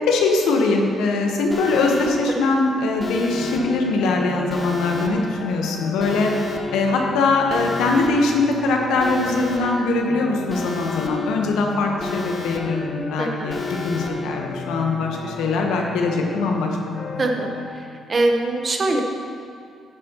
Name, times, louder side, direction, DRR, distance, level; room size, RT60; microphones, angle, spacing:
voice 1, 0.1-6.3 6.7-16.7, left 3 dB, 90° left, 1 dB, 1.1 m, -22 dB
Alarm, 1.5-2.1 3.0-3.6 4.5-5.1 6.0-6.6 7.5-8.1 9.0-9.6 10.5-11.1 12.0-12.6 13.5-14.1, left 4 dB, 25° left, 1.1 m, -31 dB
sound 1, 3.3-17.7, left 4 dB, 70° left, 1.1 m, -35 dB
voice 2, 13.2-13.5 17.2-17.5 18.1-19.0, right 2 dB, 35° right, 2 dB, 1.1 m, -22 dB
10.5 x 9.5 x 3.0 m, 2.3 s
cardioid pair, 90°, 0 cm